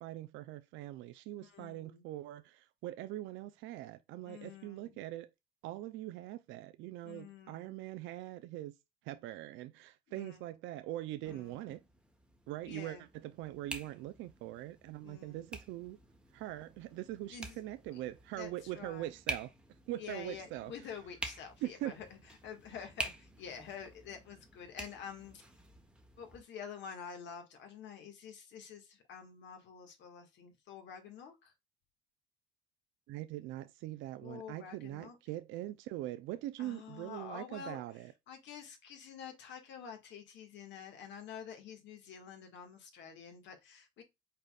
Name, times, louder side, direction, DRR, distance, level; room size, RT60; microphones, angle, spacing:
voice 1, 0.0-5.3 5.6-8.7 9.0-11.8 12.5-16.0 16.3-19.5 19.9-20.7 21.6-21.9 33.1-38.1, right 15 dB, 75° right, 0.5 m, -42 dB
voice 2, 1.4-2.0 4.2-5.0 7.0-7.8 10.1-10.4 11.2-11.6 12.6-13.1 15.0-15.5 17.3-17.6 17.9-18.0 18.4-19.1 20.0-22.2 22.4-25.4 26.2-31.5 34.2-35.2 36.6-37.8 38.3-44.0, left 7 dB, 65° left, 1.8 m, -48 dB
sound 1, 11.2-26.4, right 1 dB, 5° right, 1.0 m, -48 dB
5.4 x 4.1 x 2.3 m
supercardioid pair, 90°, 20 cm